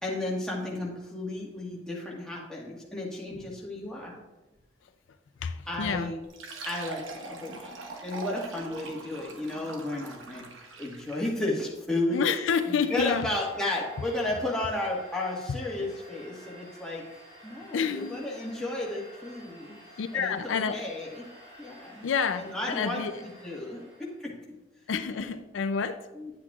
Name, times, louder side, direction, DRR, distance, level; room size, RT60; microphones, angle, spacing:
voice 1, 0.0-4.2 5.7-6.2 6.6-10.4 10.8-12.2 12.7-17.0 17.4-19.7 20.1-21.3 21.6-22.0 22.3-24.3 25.1-25.3 26.1-26.3, left 2 dB, 5° left, 1.5 m, -33 dB
voice 2, 5.4-6.1 12.1-13.3 15.8-15.9 17.7-18.2 20.0-20.8 22.0-23.2 24.9-26.1, left 6 dB, 80° left, 0.4 m, -29 dB
Fill (with liquid), 6.2-11.4, right 3 dB, 85° right, 0.9 m, -42 dB
Domestic sounds home sounds, 12.1-24.2, right 1 dB, 30° right, 2.3 m, -51 dB
9.8 x 7.9 x 2.4 m
head